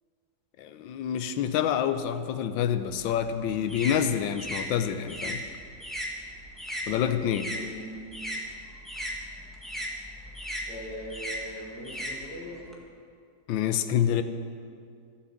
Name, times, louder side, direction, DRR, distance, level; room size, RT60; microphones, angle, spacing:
voice 1, 0.6-5.4 6.9-7.5 13.5-14.2, left 9 dB, 85° left, 11 dB, 1.3 m, -27 dB
sound 1, 2.8-7.6 7.9-12.7, equal, ahead, 1.3 m, -37 dB
voice 2, 7.5-8.0 10.7-12.6, equal, 60° left, -2 dB, 2.4 m, -40 dB
13.0 x 7.4 x 7.2 m, 2.3 s
omnidirectional pair, 2.1 m